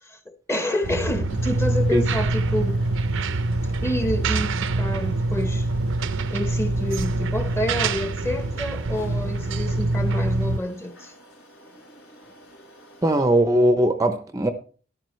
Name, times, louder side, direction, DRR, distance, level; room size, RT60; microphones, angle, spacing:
voice 1, 0.0-2.8 3.8-5.7 6.3-11.1, left 1 dB, 15° left, 1.0 m, -28 dB
sound 1, 0.8-10.6, right 2 dB, 70° right, 0.7 m, -25 dB
sound 2, 1.3-13.1, equal, 90° left, 5.2 m, -46 dB
voice 2, 13.0-14.5, right 1 dB, 15° right, 0.7 m, -19 dB
13.5 x 11.0 x 3.2 m
head